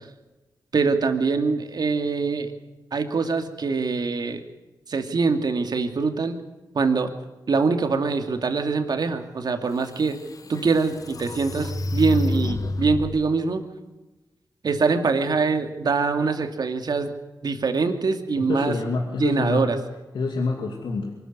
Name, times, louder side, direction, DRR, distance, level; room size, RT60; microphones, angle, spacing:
voice 1, 0.7-2.5 2.9-4.4 4.9-6.4 6.7-7.1 7.5-10.2 10.5-13.6 14.6-17.1 17.4-18.8 19.2-19.8, right 4 dB, 60° right, 7 dB, 2.5 m, -23 dB
sound 1, 9.5-9.6 10.1-13.2, left 2 dB, 50° left, 1.6 m, -29 dB
voice 2, 18.5-19.7 20.1-21.1, left 3 dB, 85° left, 2 dB, 2.6 m, -27 dB
24.0 x 14.0 x 9.7 m, 1.1 s
cardioid pair, 75°, 8 cm